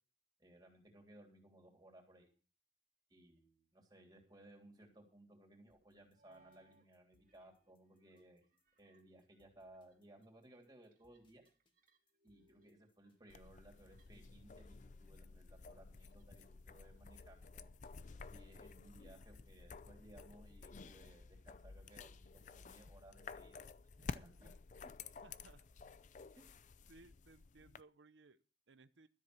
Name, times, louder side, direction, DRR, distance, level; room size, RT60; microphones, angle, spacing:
voice 1, 0.4-2.3 3.1-8.4 8.8-11.4 12.2-17.7 18.3-23.7 24.1-24.5 26.3-26.7, right 1 dB, 25° right, 0 dB, 3.3 m, -62 dB
sound 1, 3.3-3.4 6.1-6.9 7.1-14.4 14.7-15.2 15.5-16.6 17.0-17.3 17.8-19.5, right 2 dB, 50° right, 2.3 m, -75 dB
sound 2, 5.7-18.8, left 2 dB, 25° left, 2.0 m, -81 dB
sound 3, 13.3-27.8, left 4 dB, 45° left, 0.5 m, -53 dB
voice 2, 25.2-25.6 26.9-29.1, right 3 dB, 80° right, 13 dB, 0.8 m, -63 dB
13.0 x 7.6 x 6.1 m, 0.36 s
head